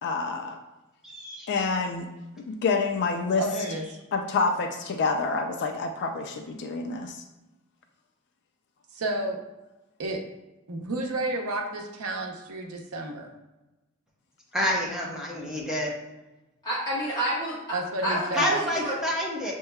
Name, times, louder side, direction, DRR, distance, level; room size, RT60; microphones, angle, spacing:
voice 1, 0.0-0.6 1.5-2.1 2.5-3.5 4.1-7.2, left 4 dB, 55° left, 5 dB, 0.3 m, -27 dB
voice 2, 1.0-1.5 14.5-15.9 18.3-19.5, equal, 5° right, -4 dB, 0.8 m, -28 dB
voice 3, 3.4-3.9 8.9-9.4 10.0-10.2 10.7-13.3 17.7-18.6, right 2 dB, 85° right, 3 dB, 0.7 m, -31 dB
voice 4, 16.6-17.8 18.0-19.0, right 1 dB, 20° left, -7 dB, 1.4 m, -29 dB
6.4 x 2.9 x 2.2 m, 1.1 s
head